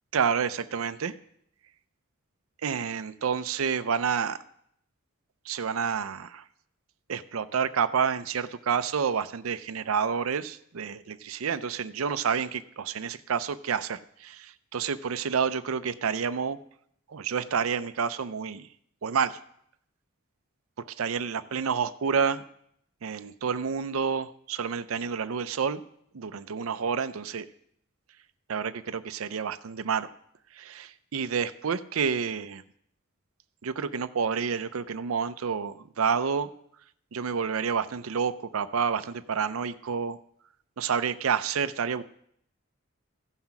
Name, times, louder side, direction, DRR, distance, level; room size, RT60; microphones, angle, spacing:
voice 1, 0.1-1.1 2.6-4.4 5.5-6.4 7.1-16.6 17.1-18.7 19.0-19.4 21.0-22.4 23.0-25.8 26.1-27.5 28.5-30.1 30.6-32.6 33.6-36.5 37.1-40.2 40.8-42.0, right 6 dB, 85° right, 12 dB, 0.5 m, -29 dB
15.0 x 5.7 x 5.9 m, 0.69 s
head